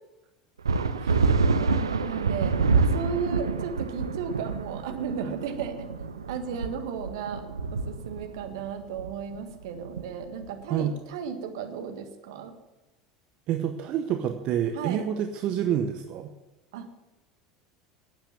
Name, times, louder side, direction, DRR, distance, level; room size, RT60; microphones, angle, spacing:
sound 1, 0.7-10.6, right 4 dB, 85° right, 0.6 m, -27 dB
voice 1, 1.0-1.3 10.7-10.9 13.5-16.3, right 9 dB, 50° right, 6 dB, 0.9 m, -28 dB
voice 2, 2.0-5.8 6.3-12.5 14.7-15.0 16.7-16.9, right 6 dB, 65° right, 7 dB, 1.6 m, -35 dB
12.0 x 8.9 x 7.5 m, 1.1 s
figure-of-eight pair, 75°, 2 cm